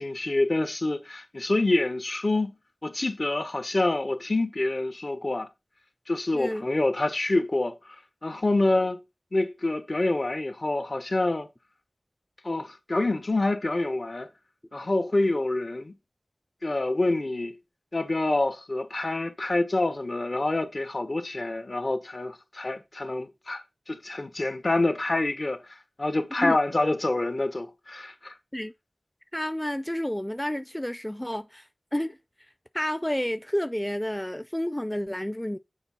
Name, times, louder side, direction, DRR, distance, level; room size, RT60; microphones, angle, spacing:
voice 1, 0.0-2.5 2.8-5.5 6.1-7.7 8.2-9.0 9.3-11.5 12.4-14.3 14.7-15.9 16.6-17.6 17.9-28.3, left 2 dB, 60° left, 1.1 m, -27 dB
voice 2, 6.3-6.7 26.4-26.6 28.5-28.7 29.3-32.2 32.7-35.6, equal, 15° left, 0.5 m, -30 dB
7.1 x 4.5 x 5.5 m
wide cardioid pair, 40°, 0 cm